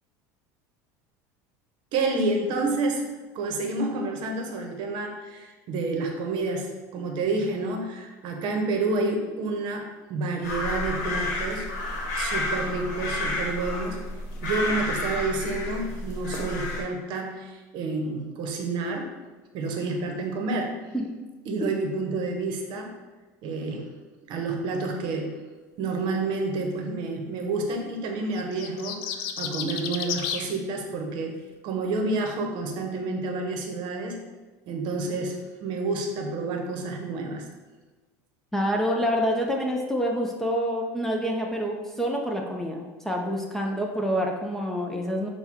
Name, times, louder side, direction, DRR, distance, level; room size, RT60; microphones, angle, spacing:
voice 1, 1.9-3.1 3.3-11.7 12.1-14.0 14.4-19.1 19.5-20.8 21.5-22.9 23.4-23.9 24.3-25.3 25.8-34.2 34.7-37.5, right 3 dB, 55° right, 3 dB, 0.8 m, -29 dB
sound 1, 10.4-16.8, left 2 dB, 85° left, 0.9 m, -30 dB
sound 2, 28.4-30.5, left 8 dB, 65° left, 0.4 m, -32 dB
voice 2, 38.5-45.3, equal, 5° left, 0 dB, 0.4 m, -27 dB
5.9 x 2.2 x 3.5 m, 1.3 s
supercardioid pair, 120°, 9 cm